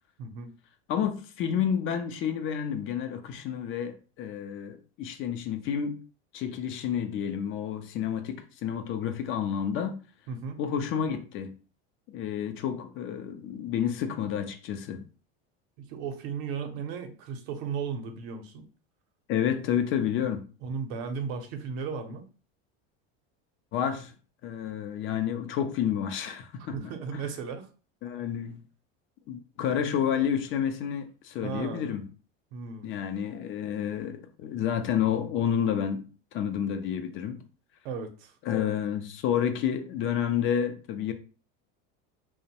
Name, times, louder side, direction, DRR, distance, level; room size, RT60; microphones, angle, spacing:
voice 1, 0.2-0.5 10.3-10.6 15.8-18.7 20.6-22.2 26.7-27.7 31.4-31.9 32.5-32.9 37.8-38.3, right 6 dB, 70° right, 0.7 m, -35 dB
voice 2, 0.9-6.0 6.3-10.0 10.6-11.5 12.1-15.0 19.3-20.4 23.7-24.1 24.4-26.8 27.1-27.2 28.0-28.6 29.3-32.0 32.8-36.1 36.3-37.4 38.5-41.1, left 8 dB, 45° left, 0.4 m, -30 dB
2.5 x 2.1 x 2.8 m
supercardioid pair, 115°, 31 cm